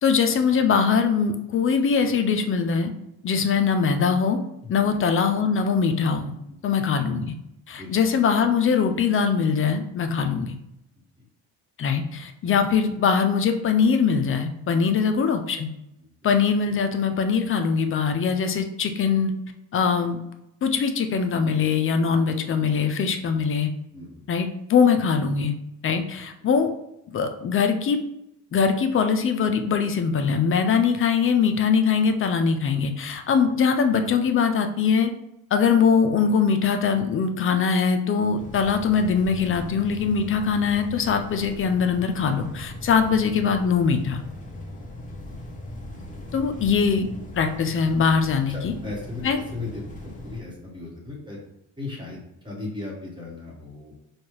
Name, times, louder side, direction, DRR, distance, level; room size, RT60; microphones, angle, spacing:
voice 1, 0.0-2.9 3.2-4.4 4.7-6.4 6.6-7.4 7.7-10.6 11.8-15.7 16.2-19.3 19.7-20.2 20.6-23.7 24.3-25.5 25.8-26.7 27.1-28.0 28.5-35.1 35.5-44.2 46.3-47.1 47.3-48.7 49.2-49.4, left 6 dB, 35° left, 7 dB, 0.4 m, -22 dB
voice 2, 23.9-24.2 42.8-42.9 44.9-45.0 46.4-46.5 48.5-51.4 51.8-53.9, left 3 dB, 10° right, -2 dB, 1.2 m, -37 dB
Bus - Machine, 38.4-50.4, left 1 dB, 20° left, 0.8 m, -39 dB
4.3 x 2.3 x 3.2 m, 0.83 s
cardioid pair, 100°, 38 cm